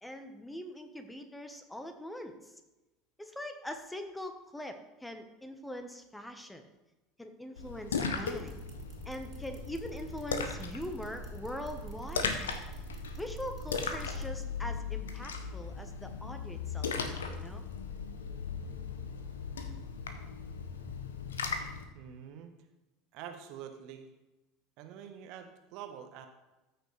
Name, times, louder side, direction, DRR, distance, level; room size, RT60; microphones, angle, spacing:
voice 1, 0.0-2.6 3.2-6.6 7.2-8.7 9.0-12.5 13.2-17.6, left 1 dB, 5° left, 7 dB, 1.1 m, -42 dB
Splash splatter, 7.6-21.8, left 5 dB, 75° left, 0.8 m, -38 dB
sound 1, 8.2-14.3, right 3 dB, 25° right, 2.7 m, -46 dB
voice 2, 21.9-22.5 23.1-24.1 24.8-26.3, right 9 dB, 55° right, 6 dB, 1.1 m, -46 dB
14.0 x 6.3 x 3.3 m, 1.1 s
figure-of-eight pair, 70°, 0 cm